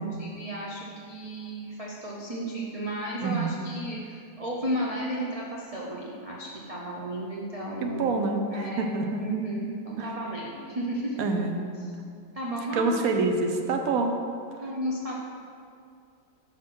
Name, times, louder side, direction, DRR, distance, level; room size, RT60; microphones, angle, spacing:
voice 1, 0.0-8.2 8.5-11.2 12.3-13.2 14.6-15.1, right 1 dB, 40° right, -5 dB, 0.5 m, -33 dB
voice 2, 7.8-9.2 10.0-10.1 11.2-11.7 12.7-14.2, right 3 dB, 65° right, 4 dB, 1.0 m, -27 dB
6.3 x 4.3 x 6.0 m, 2.4 s
omnidirectional pair, 1.8 m